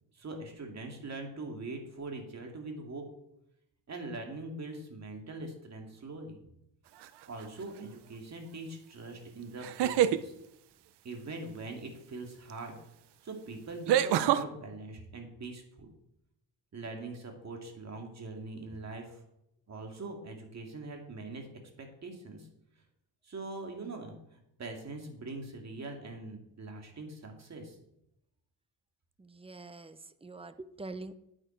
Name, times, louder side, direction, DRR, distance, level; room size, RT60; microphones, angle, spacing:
voice 1, 0.1-3.1 3.9-6.4 7.3-10.3 11.0-12.8 13.2-15.9 16.7-19.2 19.7-21.5 21.8-22.5 23.2-27.8, right 2 dB, 40° right, 3 dB, 2.3 m, -42 dB
sound 1, 7.0-7.4 9.6-10.2 12.5-12.6 13.9-14.4, right 11 dB, 90° right, 0.7 m, -26 dB
voice 2, 29.2-31.1, right 3 dB, 15° right, 12 dB, 0.6 m, -45 dB
9.1 x 9.0 x 4.5 m, 0.81 s
cardioid pair, 120°, 39 cm